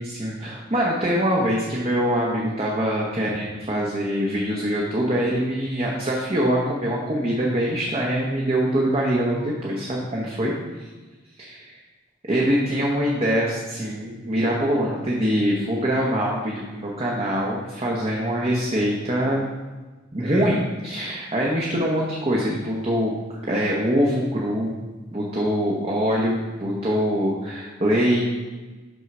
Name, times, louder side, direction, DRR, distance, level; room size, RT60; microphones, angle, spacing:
voice 1, 0.0-10.5 10.8-10.9 11.4-11.6 12.3-19.4 20.1-23.1 23.4-24.7 25.1-28.3, equal, 30° right, -3 dB, 0.9 m, -23 dB
6.3 x 4.0 x 5.9 m, 1.3 s
head